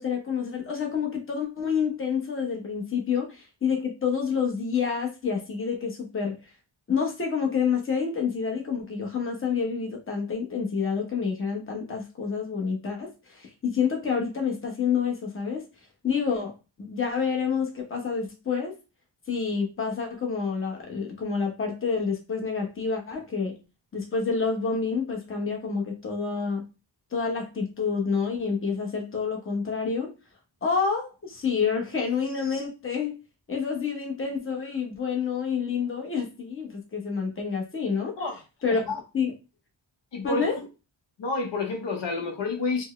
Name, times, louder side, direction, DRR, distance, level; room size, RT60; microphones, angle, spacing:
voice 1, 0.0-6.4 6.9-15.6 16.0-18.7 19.3-23.6 23.9-26.6 27.1-30.1 30.6-33.2 33.5-38.1 38.6-39.3 40.2-40.5, left 6 dB, 25° left, 0.8 m, -28 dB
voice 2, 38.7-39.0 40.1-40.5 41.2-42.8, left 3 dB, 65° left, 0.8 m, -29 dB
4.4 x 2.1 x 3.1 m
wide cardioid pair, 160°, 47 cm